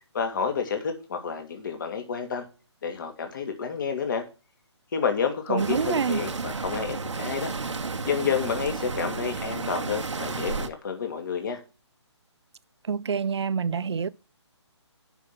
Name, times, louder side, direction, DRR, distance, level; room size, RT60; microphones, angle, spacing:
voice 1, 0.1-2.4 2.8-4.2 4.9-7.5 8.0-11.6, left 6 dB, 45° left, 2.6 m, -29 dB
voice 2, 5.5-6.2 12.9-14.1, right 6 dB, 65° right, 0.6 m, -27 dB
sound 1, 5.6-10.7, right 4 dB, 85° right, 1.3 m, -32 dB
8.0 x 6.2 x 7.3 m
hypercardioid pair, 160°, 15 cm